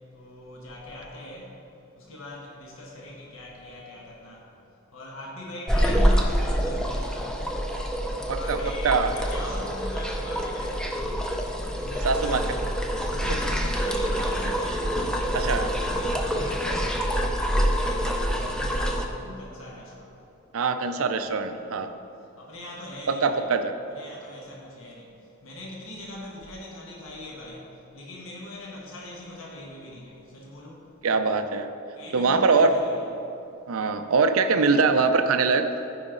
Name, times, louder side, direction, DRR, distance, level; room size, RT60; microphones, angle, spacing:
voice 1, 0.0-7.7 8.1-11.1 11.7-12.8 13.0-17.2 17.7-20.3 21.9-23.5 23.9-31.0 31.9-33.7, left 1 dB, 65° left, -2 dB, 1.3 m, -42 dB
sound 1, 5.7-19.1, equal, 5° left, 0.5 m, -26 dB
voice 2, 12.0-12.4 13.3-13.4 15.3-15.7 20.5-21.9 23.1-23.7 31.0-31.7 32.1-32.7 33.7-35.7, right 4 dB, 75° right, 8 dB, 0.5 m, -23 dB
14.5 x 5.0 x 3.8 m, 2.9 s
head